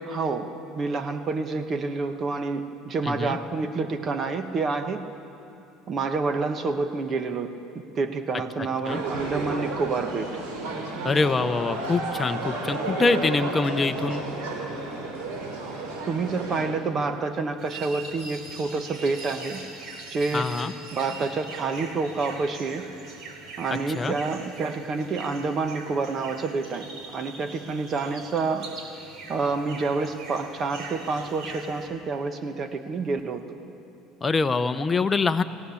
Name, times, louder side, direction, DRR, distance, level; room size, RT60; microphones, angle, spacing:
voice 1, 0.0-5.1 5.9-10.4 16.1-19.7 20.1-20.5 20.9-22.9 23.6-28.9 29.3-33.6, right 4 dB, 35° right, 8 dB, 1.1 m, -28 dB
voice 2, 3.0-3.4 8.9-9.0 11.0-14.2 20.3-20.7 24.0-24.1 34.2-35.4, left 4 dB, 20° left, 9 dB, 0.8 m, -24 dB
sound 1, 8.8-16.6, right 2 dB, 80° right, 6.5 m, -32 dB
sound 2, 17.6-31.9, right 3 dB, 55° right, 3.8 m, -42 dB
21.5 x 17.0 x 7.1 m, 2.8 s
supercardioid pair, 115°, 0 cm